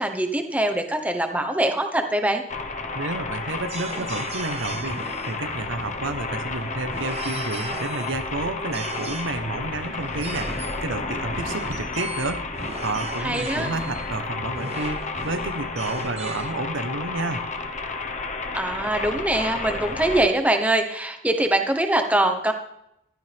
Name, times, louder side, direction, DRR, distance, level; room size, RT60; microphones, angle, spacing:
voice 1, 0.0-2.4 13.2-13.7 18.5-22.5, right 1 dB, 5° right, 5 dB, 1.1 m, -23 dB
sound 1, 2.5-20.3, left 3 dB, 40° left, 1.1 m, -31 dB
voice 2, 2.9-17.4, right 2 dB, 80° right, 9 dB, 1.1 m, -30 dB
sound 2, 3.5-16.5, right 3 dB, 30° right, 0.9 m, -38 dB
15.5 x 12.5 x 3.5 m, 0.80 s
head